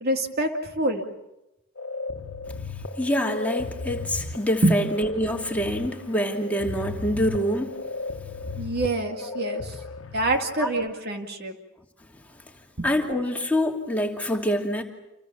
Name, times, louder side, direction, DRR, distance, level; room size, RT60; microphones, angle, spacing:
voice 1, 0.0-1.1 4.6-4.8 8.6-9.7 10.1-11.6 12.8-12.9, right 2 dB, 50° right, 2.3 m, -25 dB
sound 1, 1.8-10.4, left 3 dB, 75° left, 1.3 m, -35 dB
voice 2, 3.0-7.8 9.2-9.3 10.6-10.7 12.8-14.8, equal, 5° left, 2.8 m, -26 dB
29.0 x 27.5 x 7.1 m
head